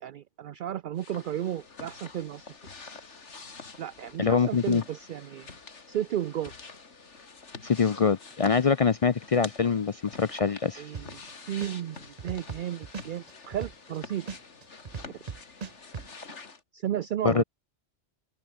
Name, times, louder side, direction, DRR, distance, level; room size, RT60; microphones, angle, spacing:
voice 1, 0.0-2.5 3.8-5.6 5.9-6.5 10.8-11.2 11.5-14.3 16.7-17.4, right 11 dB, 60° right, 0.6 m, -33 dB
sound 1, 1.0-16.6, left 4 dB, 85° left, 2.5 m, -47 dB
voice 2, 4.2-4.8 7.6-10.8 17.2-17.4, left 5 dB, 45° left, 0.4 m, -24 dB
sound 2, 10.9-11.3 11.6-14.0 14.3-16.1, right 6 dB, 40° right, 0.9 m, -38 dB
open air
omnidirectional pair, 1.2 m